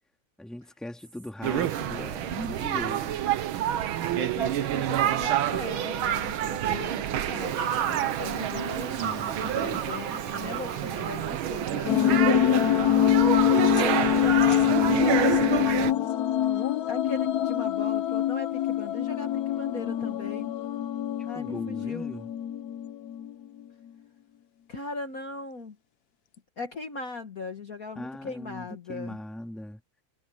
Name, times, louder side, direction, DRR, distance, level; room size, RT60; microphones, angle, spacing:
voice 1, 0.4-3.2 9.0-9.8 21.2-22.3 28.0-29.8, left 1 dB, ahead, 2.1 m, -39 dB
sound 1, 1.4-15.9, right 11 dB, 70° right, 1.7 m, -28 dB
voice 2, 3.8-9.0 9.4-13.0 13.7-16.1 16.6-20.5 21.3-22.1 24.7-25.8 26.6-29.2, left 4 dB, 45° left, 1.7 m, -39 dB
Fowl / Bird vocalization bird call bird song, 7.4-12.4, right 7 dB, 45° right, 1.6 m, -37 dB
sound 2, 11.9-23.3, left 11 dB, 70° left, 0.9 m, -25 dB
omnidirectional pair, 2.4 m